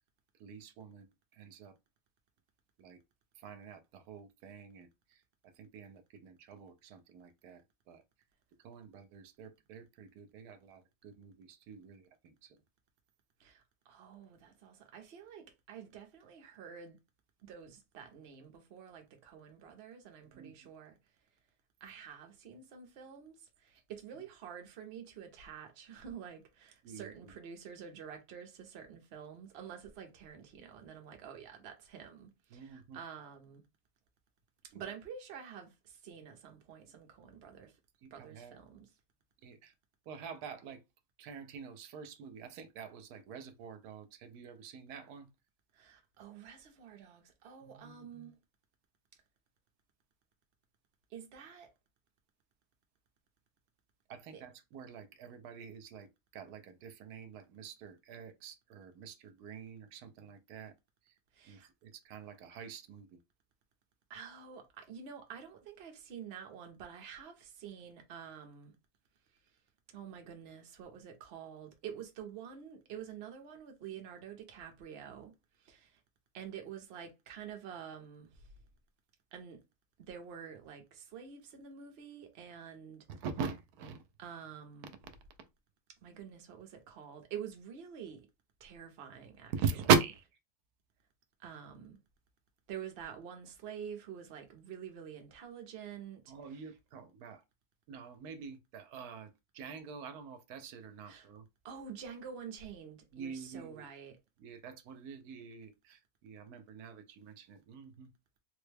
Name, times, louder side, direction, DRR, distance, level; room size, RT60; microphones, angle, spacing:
voice 1, 0.4-1.1 1.4-1.7 2.8-3.0 3.4-4.9 5.6-7.6 7.9-8.0 8.6-12.6 20.3-20.5 26.8-27.1 32.5-33.0 34.7-34.8 38.0-38.5 39.4-39.7 40.1-40.8 41.2-45.3 47.6-48.3 54.1-56.1 56.3-60.7 61.5-63.1 83.1-84.0 89.5-90.2 96.3-97.4 97.9-101.4 103.1-103.9 104.4-108.1, right 6 dB, 85° right, 1.1 m, -40 dB
voice 2, 13.4-17.0 17.4-21.0 21.8-33.6 34.7-37.8 38.1-38.9 45.7-48.4 51.1-51.7 54.3-54.4 61.3-61.7 64.1-68.7 69.9-75.3 75.6-76.0 76.3-78.5 79.3-79.6 80.0-83.1 84.2-85.0 86.0-88.3 88.6-89.5 91.4-92.0 92.7-96.7 101.0-101.3 101.6-104.2, right 8 dB, 50° right, 0.8 m, -48 dB
3.4 x 2.1 x 3.2 m
omnidirectional pair, 1.6 m